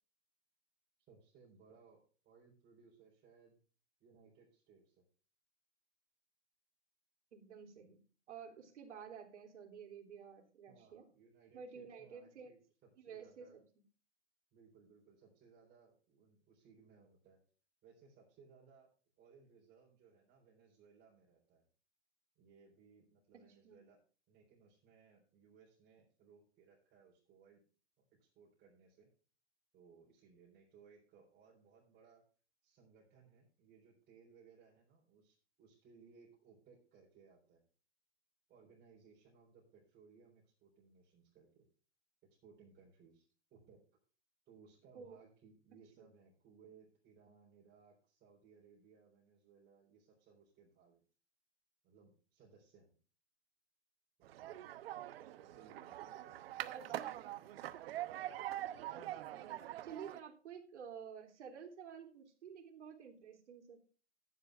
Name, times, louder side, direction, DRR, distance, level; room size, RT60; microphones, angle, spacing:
voice 1, 1.1-3.6 4.0-5.0 10.7-12.6 13.1-13.6 14.5-17.4 17.8-18.9 19.2-21.7 22.4-24.0 24.3-27.6 28.0-29.1 29.7-32.2 32.6-37.6 38.5-41.6 42.3-43.8 44.5-51.0 51.8-52.9 54.2-54.6 55.3-57.0, right 5 dB, 30° right, -4 dB, 4.1 m, -64 dB
voice 2, 7.3-8.0 8.3-11.0 11.5-12.5 13.0-13.8 23.3-23.8 44.9-45.2 46.0-46.1 56.7-57.1 58.9-59.5 59.8-63.8, right 7 dB, 75° right, 2 dB, 3.2 m, -52 dB
sound 1, 54.2-60.2, right 13 dB, 55° right, 1.0 m, -44 dB
14.5 x 10.0 x 2.5 m, 0.39 s
hypercardioid pair, 135°, 35 cm